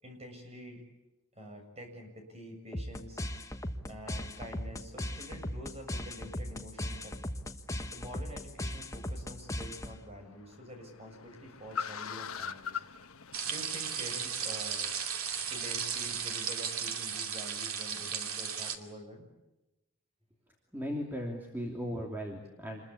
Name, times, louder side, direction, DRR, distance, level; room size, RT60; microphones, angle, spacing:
voice 1, 0.0-0.8 1.3-3.2 3.9-7.1 7.9-12.8 13.4-14.9 15.5-19.3, equal, 30° right, 4 dB, 7.1 m, -47 dB
sound 1, 2.7-10.2, left 1 dB, 15° left, 1.3 m, -38 dB
Car, 8.9-16.3, left 7 dB, 75° left, 1.1 m, -44 dB
sound 2, 13.3-18.8, right 7 dB, 75° right, 2.6 m, -35 dB
voice 2, 20.7-22.9, equal, 10° right, 0 dB, 2.9 m, -37 dB
27.5 x 22.0 x 8.5 m, 0.97 s
head